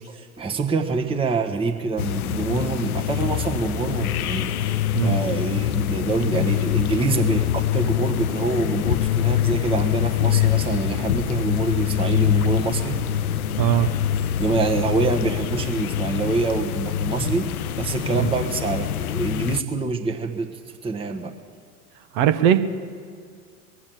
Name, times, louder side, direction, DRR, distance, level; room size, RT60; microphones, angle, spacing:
voice 1, 0.1-13.0 14.4-17.4 17.8-20.5 20.8-21.3, right 4 dB, 10° right, 3 dB, 1.2 m, -26 dB
sound 1, 2.0-19.6, left 11 dB, 70° left, 0.7 m, -24 dB
Train, 9.5-15.8, right 3 dB, 60° right, 1.4 m, -43 dB
voice 2, 13.6-13.9 18.1-18.3 22.1-22.6, right 11 dB, 45° right, 10 dB, 1.0 m, -19 dB
21.0 x 7.4 x 9.1 m, 2.1 s
figure-of-eight pair, 85°, 46 cm